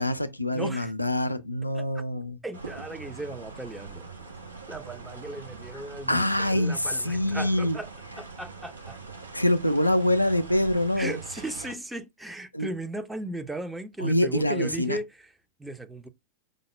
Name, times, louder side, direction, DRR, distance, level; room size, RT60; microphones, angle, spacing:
voice 1, 0.0-2.4 6.1-7.8 9.3-11.2 12.5-12.7 14.0-15.0, left 1 dB, 90° left, 0.4 m, -25 dB
voice 2, 0.5-0.9 1.7-2.0 2.4-4.1 4.7-7.9 8.2-9.0 11.0-15.3 15.6-16.1, right 1 dB, 5° right, 0.5 m, -36 dB
sound 1, 2.5-11.7, right 4 dB, 75° right, 0.6 m, -43 dB
5.2 x 2.0 x 3.2 m
figure-of-eight pair, 90°, 0 cm